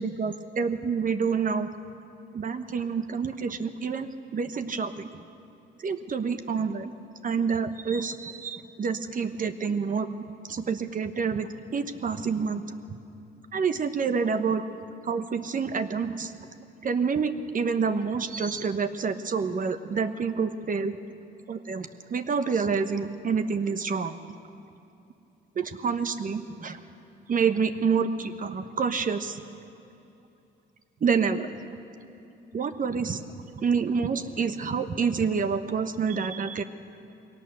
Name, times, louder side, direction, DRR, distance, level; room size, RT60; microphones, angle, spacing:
voice 1, 0.0-1.7 2.3-5.1 5.8-6.9 7.2-10.1 10.5-12.7 13.5-14.6 15.0-16.4 16.8-21.0 21.5-24.1 25.6-26.8 27.3-29.4 31.0-31.5 32.5-33.2 33.5-36.6, right 5 dB, 45° right, 9 dB, 1.1 m, -28 dB
21.5 x 18.0 x 6.8 m, 2.8 s
cardioid pair, 90°, 20 cm